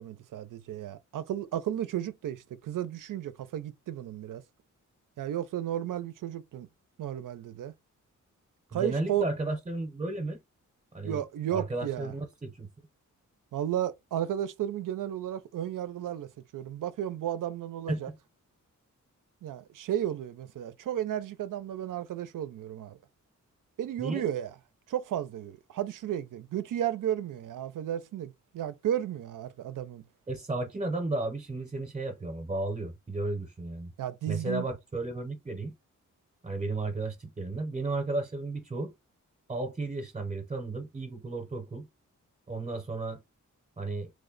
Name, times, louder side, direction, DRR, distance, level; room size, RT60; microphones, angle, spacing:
voice 1, 0.0-4.4 5.2-6.7 7.0-7.7 8.7-9.3 11.0-12.1 13.5-18.1 19.4-23.0 23.8-24.5 24.9-30.0 34.0-34.7, right 11 dB, 80° right, 0.5 m, -33 dB
voice 2, 8.7-10.4 10.9-11.2 11.5-12.7 17.9-18.2 24.0-24.3 30.3-33.9 34.3-35.7 36.4-38.9 39.5-41.9 42.5-43.2 43.8-44.1, right 2 dB, 20° right, 0.7 m, -33 dB
3.1 x 2.1 x 3.8 m
wide cardioid pair, 125°, 31 cm